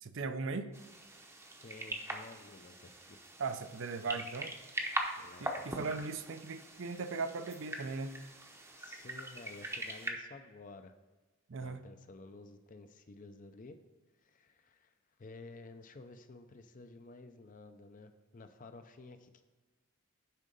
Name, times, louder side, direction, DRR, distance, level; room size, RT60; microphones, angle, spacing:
voice 1, 0.0-0.7 3.4-4.5 5.4-8.1 11.5-11.8, right 4 dB, 60° right, 9 dB, 0.6 m, -38 dB
sound 1, 0.7-10.1, right 1 dB, 15° right, 0.7 m, -42 dB
voice 2, 1.6-3.2 4.1-4.2 5.2-6.0 8.8-10.9 11.6-13.8 14.2-14.9 15.2-19.4, left 3 dB, 40° left, 9 dB, 0.5 m, -53 dB
10.0 x 3.7 x 5.3 m, 1.2 s
head